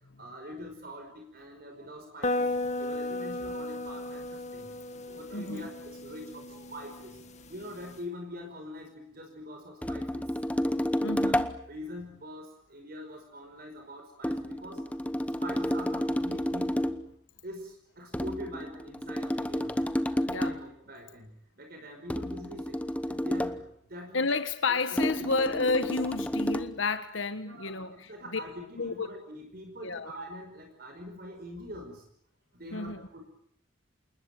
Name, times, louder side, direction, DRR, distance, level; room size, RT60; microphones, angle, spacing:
voice 1, 0.2-2.5 2.8-7.2 7.5-10.3 11.0-11.3 11.7-14.9 15.2-17.0 17.4-19.7 20.1-21.3 21.6-22.8 23.1-23.6 23.9-24.2 25.1-25.2 27.4-32.0 32.5-33.2, equal, 50° right, 5.1 m, -44 dB
sound 1, 2.2-8.0, left 2 dB, 35° left, 2.0 m, -35 dB
voice 2, 5.3-5.7 11.0-11.5 20.2-20.6 24.1-28.4 28.8-29.1 29.8-30.1 32.7-33.1, left 3 dB, 80° left, 1.5 m, -31 dB
sound 2, 9.8-11.7 14.2-17.1 18.1-20.7 22.1-23.7 25.0-26.8, equal, 5° left, 1.0 m, -30 dB
28.0 x 20.5 x 9.2 m
head